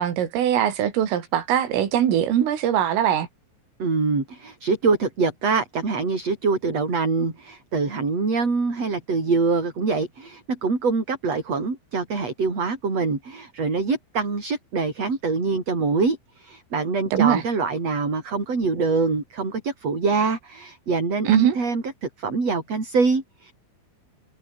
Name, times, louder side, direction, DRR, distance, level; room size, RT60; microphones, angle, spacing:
voice 1, 0.0-3.3 17.1-17.4 21.3-21.6, right 10 dB, 85° right, 5.5 m, -21 dB
voice 2, 3.8-23.5, right 4 dB, 30° right, 6.6 m, -24 dB
omnidirectional pair, 5.7 m